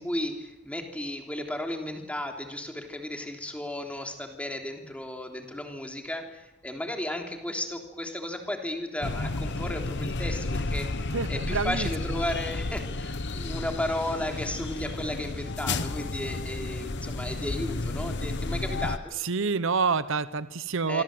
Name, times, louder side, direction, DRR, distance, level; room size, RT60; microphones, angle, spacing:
voice 1, 0.0-19.1 20.9-21.0, left 1 dB, 5° left, 3 dB, 3.3 m, -34 dB
sound 1, 9.0-19.0, left 2 dB, 60° left, 1.1 m, -32 dB
voice 2, 11.1-11.9 19.2-21.0, right 4 dB, 65° right, 14 dB, 0.9 m, -27 dB
26.5 x 25.0 x 7.9 m, 0.94 s
head